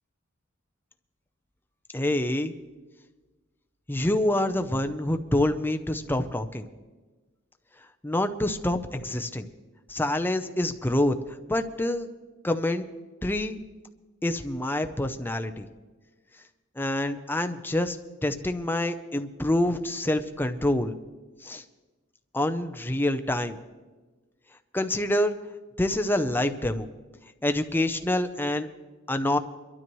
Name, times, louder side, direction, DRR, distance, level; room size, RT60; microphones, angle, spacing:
voice 1, 1.9-2.5 3.9-6.7 8.0-9.5 9.9-11.2 11.5-12.1 12.4-12.9 13.2-13.6 14.2-15.7 16.8-18.0 18.2-21.0 21.4-21.6 22.3-23.6 24.7-25.3 25.8-26.9 27.4-28.7 29.1-29.4, left 1 dB, 10° left, 7 dB, 0.6 m, -26 dB
23.5 x 12.5 x 3.1 m, 1.3 s
head